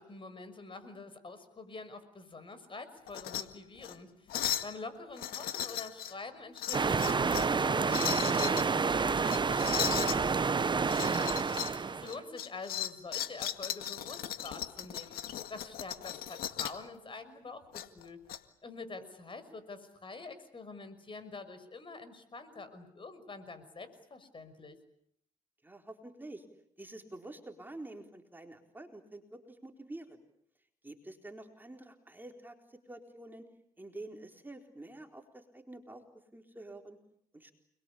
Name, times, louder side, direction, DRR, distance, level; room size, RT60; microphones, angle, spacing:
voice 1, 0.0-11.3 11.9-18.2 18.6-24.7, left 3 dB, 35° left, 12 dB, 6.0 m, -46 dB
sound 1, 3.1-3.4 3.8-3.9 4.3-4.7 5.2-6.1 6.6-7.5 7.9-8.6 9.2-10.2 10.9-11.8 12.1-16.8 17.7-18.4, left 11 dB, 80° left, 1.9 m, -37 dB
sound 2, 6.7-12.2, right 5 dB, 30° right, 1.1 m, -29 dB
voice 2, 25.6-26.5 26.8-30.2 30.8-33.4 33.8-36.0 36.3-37.0 37.3-37.5, right 2 dB, 15° right, 4 dB, 4.2 m, -48 dB
30.0 x 22.5 x 8.6 m, 0.71 s
cardioid pair, 80°, 15 cm